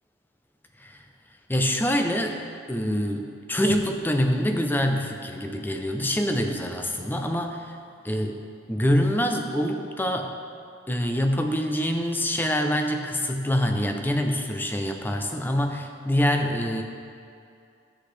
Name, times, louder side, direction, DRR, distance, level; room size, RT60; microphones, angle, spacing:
voice 1, 1.5-2.4 2.7-7.8 8.0-8.4 8.7-10.3 10.9-16.8, equal, 10° left, 4 dB, 0.5 m, -25 dB
11.0 x 8.0 x 3.3 m, 2.5 s
head